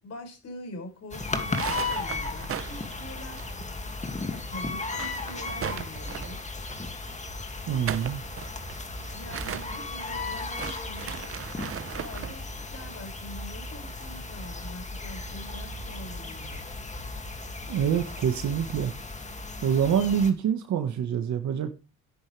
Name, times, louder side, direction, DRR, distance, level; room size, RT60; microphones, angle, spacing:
voice 1, 0.0-3.5 4.3-6.4 9.1-11.3 12.0-16.6, left 1 dB, 55° left, 6.6 m, -44 dB
sound 1, 1.1-20.3, left 3 dB, 25° left, 2.6 m, -35 dB
sound 2, 1.4-4.0 4.2-4.3 4.7-6.5 7.6-12.4, right 9 dB, 50° right, 1.0 m, -38 dB
voice 2, 7.7-8.2 17.7-18.9 19.6-21.7, right 8 dB, 70° right, 1.7 m, -26 dB
13.0 x 10.0 x 3.5 m
cardioid pair, 90°, 30 cm